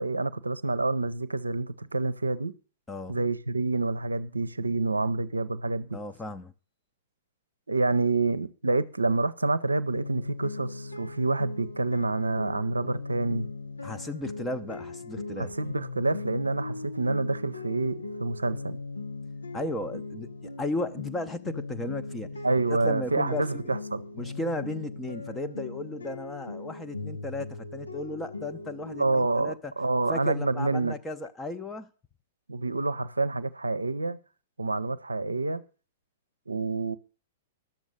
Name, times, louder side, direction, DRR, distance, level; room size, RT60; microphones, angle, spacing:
voice 1, 0.0-2.5 3.1-6.0 7.7-13.5 15.4-18.8 22.4-24.1 29.0-30.9 32.5-34.2 34.6-35.6 36.5-37.0, right 3 dB, 85° right, 0.6 m, -28 dB
voice 2, 5.9-6.5 13.8-15.6 19.5-22.4 22.7-23.6 24.1-29.7 30.1-31.9, left 1 dB, 10° left, 0.7 m, -35 dB
sound 1, 9.9-29.3, left 3 dB, 85° left, 1.0 m, -39 dB
12.0 x 7.2 x 6.4 m
figure-of-eight pair, 105°, 0 cm